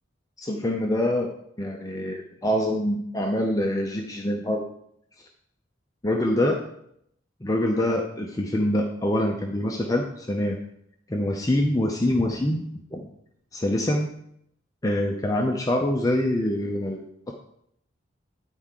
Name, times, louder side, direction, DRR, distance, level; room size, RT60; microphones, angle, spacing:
voice 1, 0.4-4.6 6.0-6.6 7.4-10.6 11.1-12.6 12.9-13.1 13.5-14.1 14.8-17.3, left 1 dB, 20° left, 1 dB, 0.6 m, -25 dB
9.9 x 4.5 x 3.7 m, 0.73 s
head